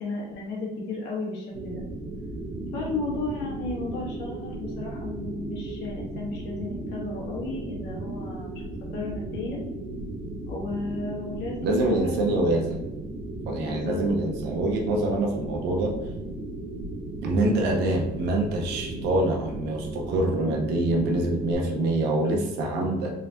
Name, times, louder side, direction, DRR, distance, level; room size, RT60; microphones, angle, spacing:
voice 1, 0.0-1.8 2.7-8.6 8.9-9.6 10.5-12.4 13.7-14.0 17.3-17.6, left 2 dB, 85° left, -3 dB, 1.4 m, -34 dB
sound 1, 1.5-21.5, right 2 dB, 40° right, 1.1 m, -35 dB
voice 2, 11.6-12.9 13.5-15.9 17.2-23.1, right 2 dB, 80° right, 0 dB, 0.9 m, -25 dB
3.8 x 3.3 x 2.8 m, 0.95 s
cardioid pair, 110°, 17 cm